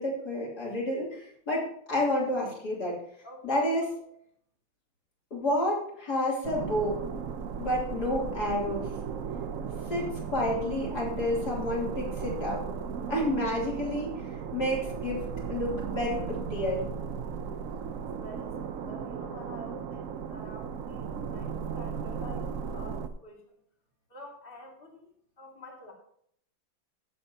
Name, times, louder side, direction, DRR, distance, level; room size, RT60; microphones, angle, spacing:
voice 1, 0.0-3.0 3.4-3.9 5.3-7.0 7.6-8.9 9.9-12.7 13.1-16.8, left 1 dB, 55° left, -3 dB, 3.8 m, -30 dB
voice 2, 3.2-3.6 18.2-23.5 24.1-25.1 25.4-25.9, left 1 dB, 25° left, -1 dB, 2.5 m, -48 dB
sound 1, 6.4-23.1, right 6 dB, 60° right, 0.9 m, -36 dB
16.0 x 7.8 x 2.9 m, 0.67 s
omnidirectional pair, 2.1 m